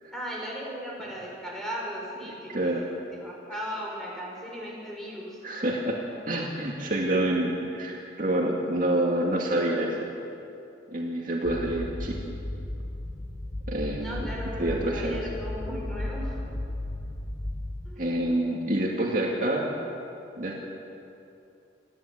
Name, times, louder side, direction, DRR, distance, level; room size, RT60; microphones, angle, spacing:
voice 1, 0.1-2.9 3.1-5.4 14.0-16.6 17.9-18.1, equal, ahead, -4 dB, 5.4 m, -37 dB
voice 2, 2.5-2.8 5.4-6.0 6.2-10.1 10.9-12.2 13.7-14.3 14.6-15.2 18.0-19.7 20.4-20.6, right 1 dB, 50° right, -2 dB, 2.3 m, -27 dB
sound 1, 11.4-17.9, left 1 dB, 20° left, 0.7 m, -35 dB
28.5 x 11.0 x 8.7 m, 2.7 s
head